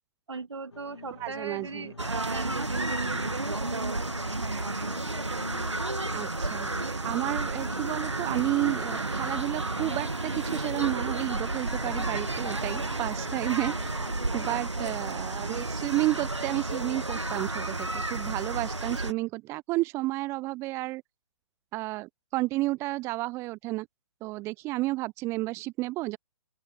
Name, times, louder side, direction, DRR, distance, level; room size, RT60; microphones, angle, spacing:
voice 1, 0.3-4.1 4.3-4.9 14.3-14.9, right 4 dB, 75° right, 1.9 m, -38 dB
sound 1, 0.7-14.4, left 4 dB, 75° left, 2.4 m, -48 dB
voice 2, 1.2-1.9 6.1-6.7 7.0-13.9 14.3-21.0 21.7-23.9 24.2-26.2, right 20 dB, 20° right, 0.7 m, -31 dB
sound 2, 2.0-19.1, right 2 dB, 90° right, 1.9 m, -32 dB
sound 3, 6.6-17.0, right 7 dB, 60° right, 0.8 m, -42 dB
open air
figure-of-eight pair, 130°, 15 cm